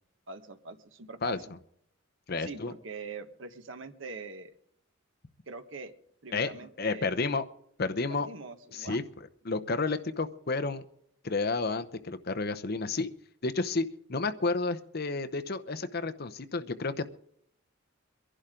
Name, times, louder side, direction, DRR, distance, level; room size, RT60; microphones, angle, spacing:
voice 1, 0.3-1.4 2.4-4.5 5.5-5.9 6.2-7.4 8.1-9.0, right 4 dB, 65° right, 8 dB, 1.4 m, -43 dB
voice 2, 2.3-2.7 6.3-6.5 6.8-7.4 7.8-8.3 8.7-9.0 9.4-10.8 11.2-13.1 13.4-17.1, left 3 dB, 50° left, 9 dB, 0.8 m, -31 dB
23.5 x 11.5 x 3.8 m, 0.70 s
head